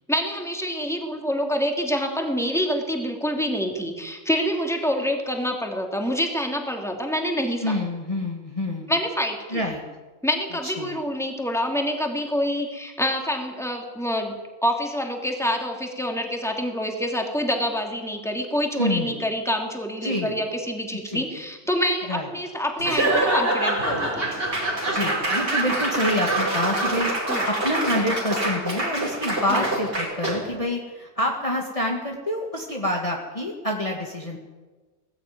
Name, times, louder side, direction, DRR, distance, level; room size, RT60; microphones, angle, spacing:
voice 1, 0.1-7.7 8.9-9.6 10.2-24.3 27.3-27.4 29.5-29.7, equal, ahead, 2 dB, 2.8 m, -26 dB
voice 2, 7.6-8.9 9.5-9.8 10.6-11.0 18.8-19.2 20.0-20.4 21.0-21.3 22.1-22.3 24.9-34.4, left 1 dB, 25° left, -1 dB, 2.0 m, -27 dB
Laughter / Applause / Crowd, 22.8-30.6, right 1 dB, 60° right, 4.5 m, -25 dB
19.0 x 15.0 x 9.4 m, 1.3 s
omnidirectional pair, 1.3 m